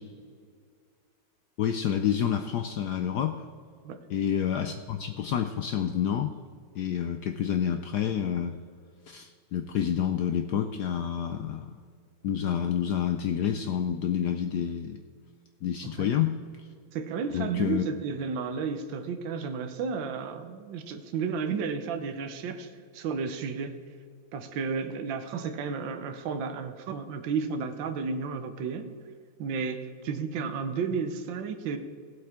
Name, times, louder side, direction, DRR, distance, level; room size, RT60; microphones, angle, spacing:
voice 1, 1.6-3.4 4.1-6.3 6.7-8.6 9.1-11.8 12.2-15.0 15.6-16.4 17.3-17.8, left 9 dB, 80° left, 7 dB, 0.9 m, -28 dB
voice 2, 16.9-23.8 24.3-28.9 29.4-31.8, right 5 dB, 70° right, 7 dB, 1.5 m, -32 dB
17.0 x 8.0 x 3.6 m, 2.1 s
omnidirectional pair, 2.3 m